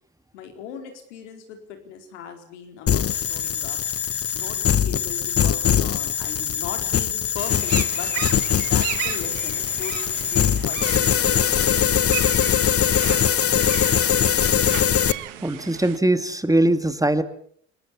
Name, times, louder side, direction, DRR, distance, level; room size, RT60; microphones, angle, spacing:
voice 1, 0.3-3.8 4.3-8.1 8.5-11.6, left 7 dB, 85° left, 5 dB, 4.4 m, -38 dB
sound 1, 2.9-15.1, left 9 dB, 40° left, 1.1 m, -22 dB
sound 2, 7.4-16.0, right 14 dB, 85° right, 1.8 m, -35 dB
voice 2, 15.4-17.2, right 1 dB, 10° right, 11 dB, 2.4 m, -21 dB
28.0 x 20.5 x 7.2 m, 0.62 s
hypercardioid pair, 55°, 36 cm